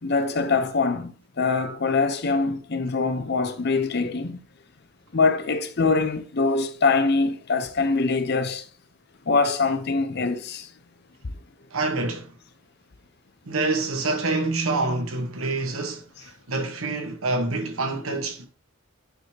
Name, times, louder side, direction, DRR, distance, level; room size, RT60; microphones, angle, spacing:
voice 1, 0.0-4.4 5.1-8.7 9.3-10.7, left 4 dB, 50° left, 0.7 m, -23 dB
voice 2, 11.7-12.3 13.5-18.5, right 3 dB, 85° right, 1.4 m, -27 dB
9.1 x 4.8 x 2.9 m
head